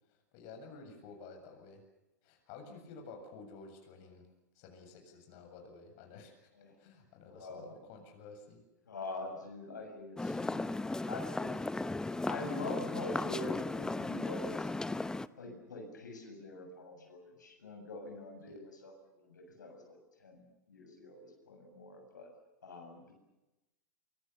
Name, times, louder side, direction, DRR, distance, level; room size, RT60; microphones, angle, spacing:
voice 1, 0.1-1.8 2.2-4.3 4.5-6.4 6.8-8.6 18.5-18.7, left 4 dB, 50° left, 4 dB, 7.7 m, -52 dB
voice 2, 7.3-7.8 8.9-10.7 11.1-11.6 12.3-14.7 15.4-22.3 22.6-23.1, left 3 dB, 80° left, 3 dB, 7.6 m, -44 dB
sound 1, 10.2-15.3, left 2 dB, 5° left, 0.9 m, -36 dB
25.5 x 25.0 x 7.0 m, 0.97 s
hypercardioid pair, 100°, 10 cm